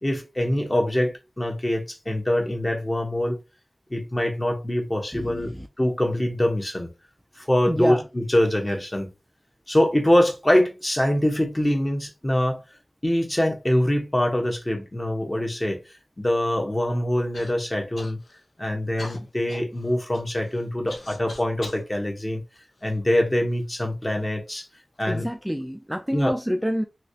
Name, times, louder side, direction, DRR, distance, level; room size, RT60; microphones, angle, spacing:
voice 1, 0.0-3.4 3.9-5.5 5.8-6.9 7.4-9.1 9.7-12.6 13.0-15.8 16.2-18.2 18.6-22.4 22.8-24.7 25.0-25.3 26.1-26.3, left 1 dB, 25° left, 1.1 m, -24 dB
voice 2, 5.1-5.7 7.7-8.0 25.1-26.9, equal, ahead, 0.4 m, -27 dB
Human voice / Cough, 17.3-17.5 17.9-18.4 19.0-21.8 22.5-23.4 24.1-24.2 24.9-25.3, left 2 dB, 80° left, 0.8 m, -43 dB
3.0 x 2.7 x 2.7 m
cardioid pair, 45°, 0 cm